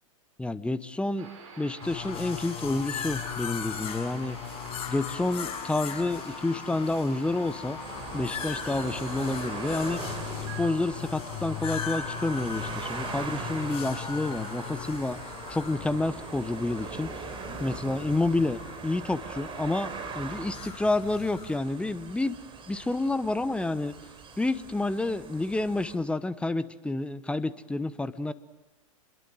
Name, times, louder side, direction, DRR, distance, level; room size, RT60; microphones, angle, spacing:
voice 1, 0.4-1.3 1.6-4.4 4.9-7.8 8.1-10.0 10.6-15.2 15.5-17.2 17.6-22.4 22.7-23.9 24.4-28.3, left 2 dB, 5° left, 14 dB, 1.1 m, -29 dB
sound 1, 1.2-10.7, right 4 dB, 65° right, 8.0 m, -47 dB
sound 2, 1.8-21.6, left 8 dB, 30° left, 7.0 m, -38 dB
sound 3, 7.8-26.0, right 4 dB, 30° right, 4.7 m, -41 dB
28.5 x 22.0 x 7.6 m, 1.0 s
hypercardioid pair, 100°, 18 cm